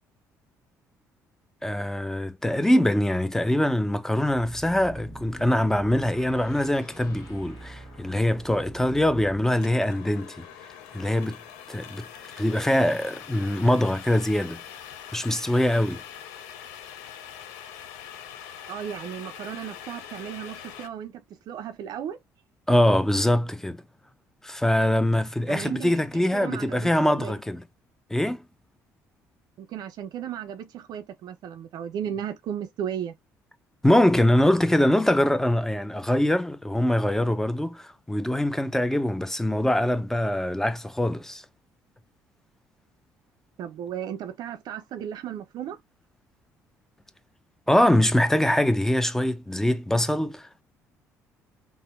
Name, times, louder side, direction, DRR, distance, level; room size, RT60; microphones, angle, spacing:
voice 1, 1.6-10.5 10.9-11.4 11.7-12.1 12.4-14.6 15.1-16.0 22.7-23.8 24.4-27.6 28.1-28.4 33.8-41.4 47.7-50.6, left 1 dB, 5° left, 0.4 m, -23 dB
sound 1, 4.2-9.5, right 1 dB, 55° left, 1.2 m, -44 dB
sound 2, 9.6-20.9, left 9 dB, 75° left, 0.4 m, -43 dB
voice 2, 18.7-22.2 25.5-27.3 29.6-33.1 43.6-45.8, right 9 dB, 60° right, 0.4 m, -35 dB
3.4 x 2.1 x 2.3 m
hypercardioid pair, 50°, 8 cm